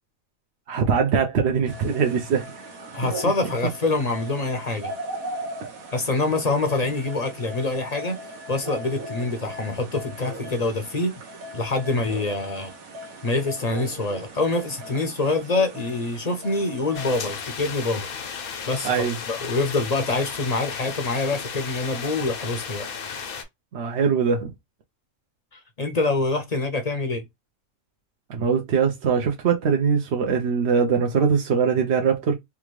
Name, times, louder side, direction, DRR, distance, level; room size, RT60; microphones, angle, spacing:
voice 1, 0.7-2.7 3.0-3.1 18.8-19.1 23.7-24.5 28.3-32.3, right 6 dB, 60° right, 0.8 m, -22 dB
sound 1, 1.7-17.3, right 1 dB, 80° right, 1.4 m, -38 dB
voice 2, 2.9-4.9 5.9-8.2 8.5-11.1 11.5-12.7 13.2-18.1 18.7-22.9 25.5-27.3, left 3 dB, 40° left, 0.6 m, -25 dB
sound 2, 16.9-23.4, left 6 dB, 90° left, 1.3 m, -34 dB
3.5 x 2.4 x 3.0 m
omnidirectional pair, 1.4 m